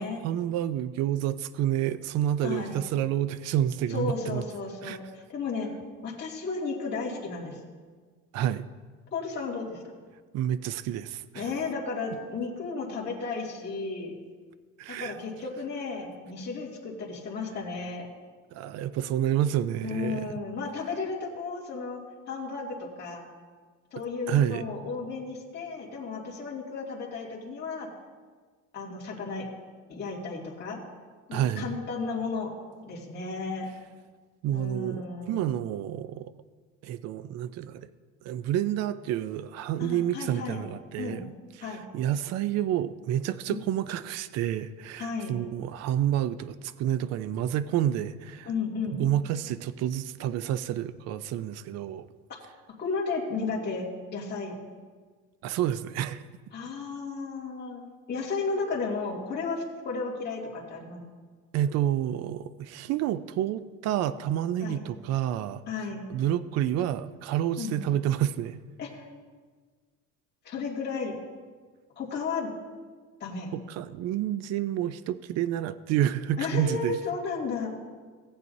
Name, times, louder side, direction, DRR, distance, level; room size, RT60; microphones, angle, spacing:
voice 1, 0.2-4.4 4.8-5.0 8.3-8.7 10.3-11.5 14.8-15.2 18.5-20.3 24.3-24.6 31.3-31.8 34.4-36.3 36.8-37.9 38.2-41.2 41.6-48.5 49.0-52.1 55.4-56.3 61.5-65.6 66.1-68.6 73.5-77.0, right 11 dB, 55° right, 14 dB, 0.4 m, -29 dB
voice 2, 2.4-2.8 3.9-5.7 6.0-7.6 9.1-9.8 11.3-14.1 14.9-18.1 19.8-22.0 22.3-23.2 23.9-27.9 28.7-29.5 29.9-30.8 31.3-32.5 32.8-33.7 34.5-35.6 39.8-40.6 41.0-41.2 41.6-41.8 43.5-43.6 45.0-45.3 48.5-49.0 52.8-53.9 54.1-54.6 56.5-61.0 64.6-64.8 65.7-66.0 67.6-67.8 68.8-69.0 70.4-71.1 72.0-72.5 73.2-73.5 76.4-77.7, left 4 dB, 35° left, -4 dB, 2.2 m, -33 dB
18.0 x 8.0 x 2.7 m, 1.5 s
cardioid pair, 165°, 31 cm